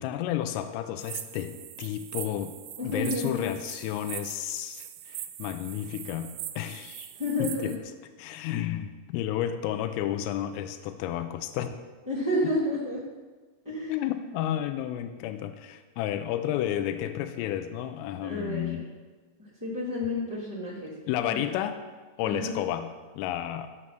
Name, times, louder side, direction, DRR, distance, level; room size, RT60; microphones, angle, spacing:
voice 1, 0.0-2.5 2.8-7.1 7.4-7.8 8.2-11.8 12.4-12.5 13.9-18.9 21.1-21.8 22.2-23.7, left 11 dB, 85° left, 9 dB, 3.3 m, -32 dB
sound 1, 1.0-7.8, right 12 dB, 85° right, 2.6 m, -41 dB
voice 2, 2.8-3.5 7.2-7.7 12.1-13.0 13.6-13.9 18.2-18.8 19.6-20.9 21.3-21.4 22.2-22.6, left 1 dB, 10° right, -8 dB, 0.8 m, -30 dB
16.0 x 7.9 x 6.0 m, 1.4 s
omnidirectional pair, 5.9 m